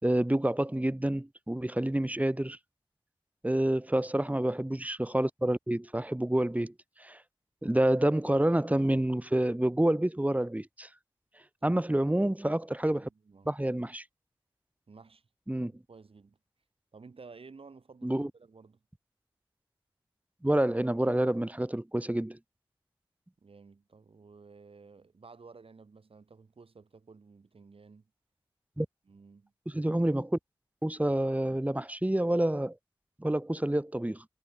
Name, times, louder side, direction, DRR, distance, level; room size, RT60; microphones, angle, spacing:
voice 1, 0.0-2.6 3.4-7.2 7.6-10.9 11.6-13.1 13.5-14.0 15.5-15.7 18.0-18.3 20.4-22.4 28.8-28.9 29.7-30.4 30.8-32.8 33.2-34.3, right 1 dB, 15° right, 1.9 m, -28 dB
voice 2, 13.0-13.5 14.9-15.3 15.6-16.4 16.9-18.8 23.4-28.1 29.1-29.5, right 4 dB, 80° right, 7.7 m, -54 dB
wide cardioid pair, 50°, 9 cm